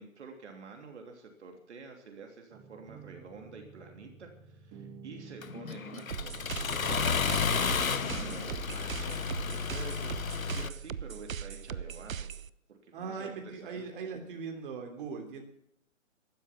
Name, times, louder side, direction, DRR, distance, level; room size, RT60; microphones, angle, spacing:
voice 1, 0.0-6.3 7.2-12.3 12.7-13.8, right 4 dB, 55° right, 3 dB, 3.2 m, -48 dB
sound 1, 2.5-8.4, right 5 dB, 15° right, 1.6 m, -50 dB
Accelerating revving vroom, 5.4-10.7, left 6 dB, 85° left, 1.2 m, -32 dB
sound 2, 6.1-12.5, right 7 dB, 80° right, 0.8 m, -39 dB
voice 2, 12.9-15.4, right 5 dB, 40° right, 3 dB, 3.4 m, -40 dB
15.5 x 13.0 x 6.0 m, 0.71 s
figure-of-eight pair, 145°, 40 cm